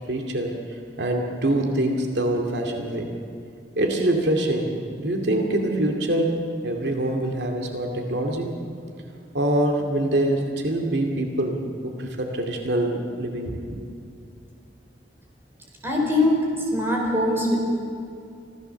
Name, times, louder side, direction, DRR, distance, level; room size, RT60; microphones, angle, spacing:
voice 1, 0.1-3.1 3.8-4.7 5.0-6.4 6.6-8.5 9.3-11.6 11.8-13.8, right 1 dB, 75° right, 2 dB, 2.3 m, -24 dB
voice 2, 15.8-17.6, left 1 dB, 15° right, -1 dB, 4.3 m, -22 dB
25.5 x 15.5 x 7.0 m, 2.4 s
head